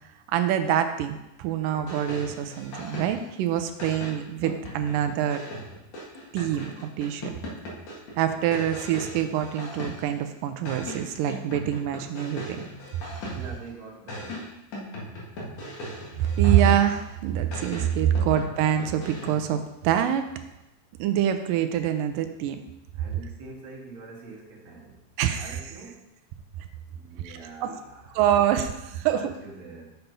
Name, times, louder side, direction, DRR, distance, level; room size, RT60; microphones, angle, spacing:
voice 1, 0.3-5.4 6.3-6.7 7.0-7.3 8.2-12.7 16.2-20.3 21.0-22.6 25.2-25.5 27.3-27.7 28.2-29.3, right 10 dB, 75° right, 8 dB, 2.2 m, -25 dB
sound 1, 1.7-3.4 3.8-10.2 10.7-13.7 14.1-17.1 17.5-19.6, equal, 55° left, 3.0 m, -39 dB
voice 2, 13.3-14.5 22.9-25.0 25.4-26.1 26.9-28.3 28.9-30.0, right 3 dB, 45° right, -2 dB, 2.0 m, -44 dB
7.9 x 5.7 x 5.3 m, 0.90 s
omnidirectional pair, 4.2 m